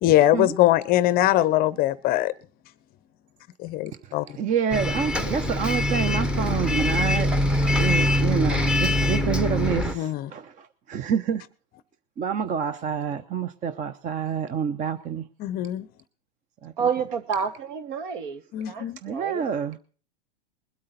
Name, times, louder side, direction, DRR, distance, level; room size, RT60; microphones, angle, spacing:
voice 1, 0.0-2.3 3.6-4.3 9.9-10.3 15.4-15.9 18.5-19.0, left 14 dB, 30° left, 0.7 m, -22 dB
voice 2, 4.0-7.3 7.8-11.4 12.2-15.3 16.6-16.9 19.0-19.8, right 7 dB, 25° right, 0.8 m, -28 dB
Bus, 4.7-10.0, left 1 dB, 5° right, 0.9 m, -23 dB
voice 3, 16.8-19.4, right 6 dB, 55° right, 1.7 m, -29 dB
21.0 x 8.6 x 4.1 m
hypercardioid pair, 105°, 29 cm